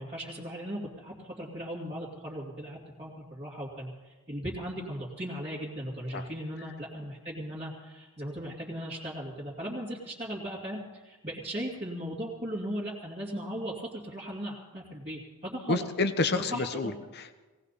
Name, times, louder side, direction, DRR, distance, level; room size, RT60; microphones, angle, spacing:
voice 1, 0.0-15.9 16.3-16.9, equal, 30° right, -7 dB, 2.5 m, -37 dB
voice 2, 15.7-17.3, left 3 dB, 50° left, 10 dB, 1.0 m, -29 dB
18.5 x 18.5 x 4.2 m, 1.2 s
head